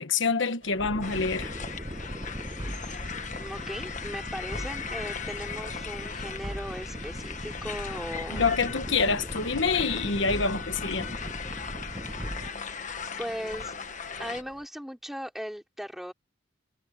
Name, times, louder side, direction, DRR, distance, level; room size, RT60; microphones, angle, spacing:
voice 1, 0.0-1.5 8.3-11.2, left 4 dB, 70° left, 1.3 m, -27 dB
sound 1, 0.6-14.7, right 1 dB, 60° right, 4.7 m, -52 dB
sound 2, 0.8-12.5, equal, 25° right, 6.4 m, -38 dB
sound 3, 1.0-14.4, left 6 dB, 40° left, 1.4 m, -38 dB
voice 2, 3.4-8.5 12.1-12.2 13.2-13.7 14.2-16.1, equal, ahead, 4.8 m, -38 dB
head